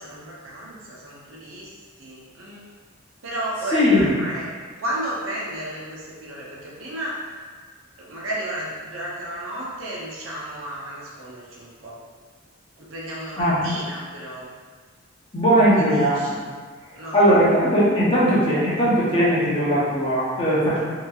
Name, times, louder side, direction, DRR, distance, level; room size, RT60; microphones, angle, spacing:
voice 1, 0.0-2.7 3.2-4.5 4.8-7.2 8.0-12.0 12.8-14.5 15.7-16.4 16.9-17.5, right 1 dB, 80° right, -5 dB, 0.7 m, -33 dB
voice 2, 3.7-4.1 13.4-13.6 15.3-16.3 17.1-20.8, equal, 25° left, -8 dB, 0.7 m, -19 dB
2.8 x 2.8 x 2.3 m, 1.5 s
head